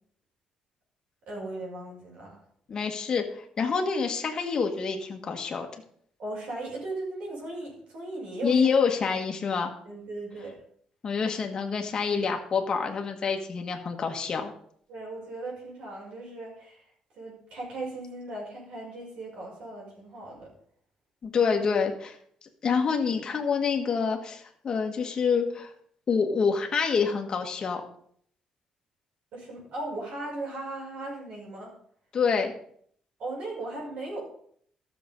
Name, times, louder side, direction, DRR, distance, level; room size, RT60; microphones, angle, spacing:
voice 1, 1.3-2.4 6.2-8.7 9.8-10.6 14.9-16.8 17.1-20.5 29.3-31.7 33.2-34.2, right 2 dB, 65° right, -3 dB, 5.5 m, -37 dB
voice 2, 2.7-5.7 8.4-9.7 11.0-14.5 21.2-22.2 22.6-25.7 26.1-27.8 32.1-32.5, left 5 dB, 35° left, 3 dB, 1.5 m, -27 dB
13.5 x 6.9 x 5.2 m, 0.63 s
cardioid pair, 145°, 2 cm